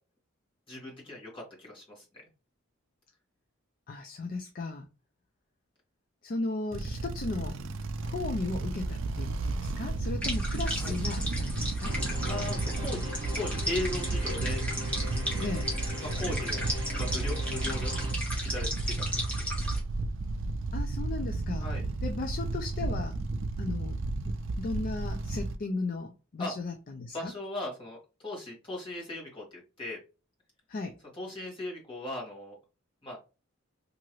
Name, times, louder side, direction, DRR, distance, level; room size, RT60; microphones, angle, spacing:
voice 1, 0.7-2.0 10.8-11.0 12.3-13.0 13.3-14.6 16.0-16.6 17.0-17.9 18.4-19.0 21.6-21.8 26.4-26.5 27.1-28.0 28.2-29.4 29.8-30.0 31.1-32.5 33.0-33.2, left 2 dB, 25° left, 1.4 m, -37 dB
voice 2, 3.9-4.8 6.2-7.6 8.0-12.0 15.4-15.7 20.7-21.7 22.0-23.2 23.6-24.0 24.2-27.3 30.7-30.9, left 3 dB, 45° left, 0.4 m, -36 dB
sound 1, 6.7-25.6, right 3 dB, 65° right, 0.4 m, -33 dB
sound 2, 10.2-19.8, equal, 5° left, 1.0 m, -36 dB
sound 3, 11.8-18.1, left 2 dB, 20° right, 1.2 m, -40 dB
2.9 x 2.6 x 3.0 m
head